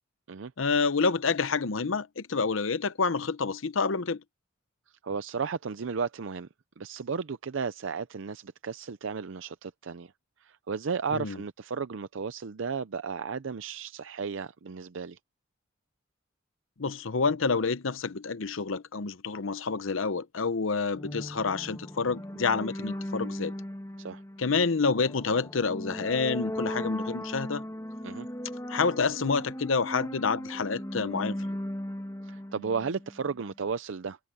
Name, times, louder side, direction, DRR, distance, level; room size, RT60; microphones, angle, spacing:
voice 1, 0.6-4.2 11.1-11.4 16.8-23.5 24.4-27.6 28.7-31.5, left 4 dB, 75° left, 0.8 m, -28 dB
voice 2, 5.0-6.5 6.8-10.1 10.4-15.2 24.0-24.2 28.0-28.3 32.2-34.2, right 5 dB, 70° right, 0.6 m, -34 dB
sound 1, 20.9-33.4, left 1 dB, 15° left, 1.5 m, -37 dB
head